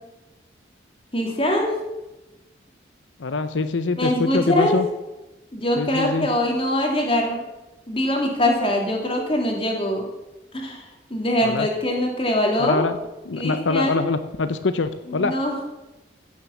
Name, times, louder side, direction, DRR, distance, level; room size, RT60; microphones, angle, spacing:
voice 1, 1.1-1.8 4.0-4.8 5.5-7.4 7.9-10.1 10.5-12.9 13.4-14.0 15.1-15.5, left 1 dB, 30° left, 1 dB, 2.7 m, -23 dB
voice 2, 3.2-4.9 5.8-6.3 11.4-11.7 12.6-13.0 13.2-15.4, left 3 dB, 90° left, 11 dB, 0.7 m, -24 dB
15.5 x 7.2 x 7.1 m, 1.0 s
head